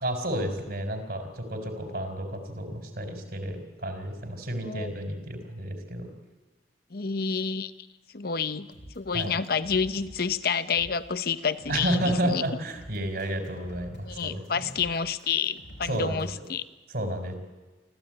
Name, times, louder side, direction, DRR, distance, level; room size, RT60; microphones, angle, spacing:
voice 1, 0.0-6.1 9.1-9.3 11.7-14.6 15.8-16.5 16.9-17.3, right 1 dB, 60° right, 5 dB, 4.0 m, -31 dB
voice 2, 6.9-7.7 8.1-8.7 9.0-12.4 14.1-16.6, left 6 dB, 60° left, 13 dB, 0.8 m, -29 dB
sound 1, 8.7-16.5, equal, 90° left, 6.1 m, -48 dB
25.0 x 15.0 x 8.9 m, 1.2 s
head